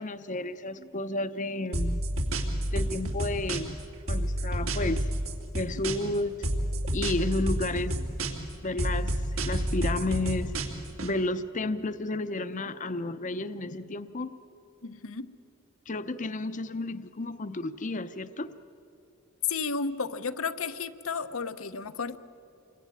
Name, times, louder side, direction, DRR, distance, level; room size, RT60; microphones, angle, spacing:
voice 1, 0.0-2.0 2.7-3.8 4.1-5.1 5.5-6.5 6.9-8.1 8.6-9.1 9.4-10.5 11.0-14.3 15.9-18.5, left 2 dB, 40° left, 11 dB, 0.8 m, -32 dB
sound 1, 1.7-3.8 4.1-6.2 6.4-8.5 8.8-11.1, right 1 dB, 80° right, 3.0 m, -29 dB
voice 2, 14.8-15.3 19.5-22.2, left 5 dB, 80° left, 10 dB, 1.0 m, -33 dB
28.0 x 23.0 x 9.3 m, 2.6 s
head